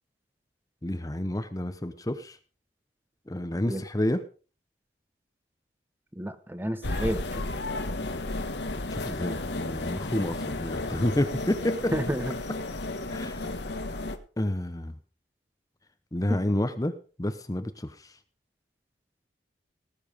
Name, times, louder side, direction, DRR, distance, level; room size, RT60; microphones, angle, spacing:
voice 1, 0.8-2.4 3.3-4.2 8.9-11.9 13.1-13.6 14.4-14.9 16.1-16.9 17.2-17.9, left 1 dB, 20° left, 10 dB, 0.8 m, -29 dB
voice 2, 6.2-7.4 11.9-12.4, equal, 10° right, 11 dB, 1.0 m, -30 dB
sound 1, 6.8-14.2, left 2 dB, 70° left, 1.4 m, -33 dB
18.5 x 7.2 x 5.1 m, 0.37 s
head